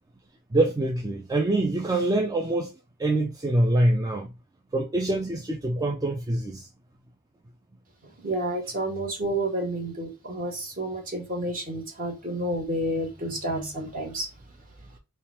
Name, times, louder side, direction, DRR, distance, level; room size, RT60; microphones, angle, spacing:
voice 1, 0.5-4.3 4.7-6.7, right 1 dB, 15° right, 0.4 m, -25 dB
voice 2, 8.0-14.3, right 1 dB, 40° right, 1.5 m, -30 dB
3.5 x 2.3 x 4.2 m
head